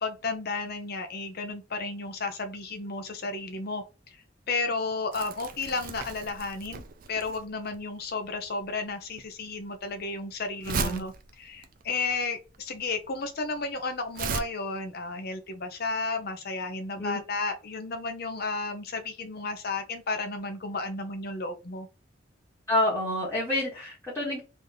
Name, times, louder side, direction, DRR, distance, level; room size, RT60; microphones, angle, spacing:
voice 1, 0.0-3.8 4.5-11.1 11.4-21.9, left 3 dB, 55° left, 7 dB, 0.7 m, -33 dB
Crumpling crinkling, 5.1-14.4, right 5 dB, 50° right, 0.5 m, -37 dB
voice 2, 10.7-11.1 17.0-17.2 22.7-24.4, left 1 dB, 15° left, -7 dB, 1.3 m, -28 dB
3.4 x 2.7 x 3.8 m, 0.31 s
head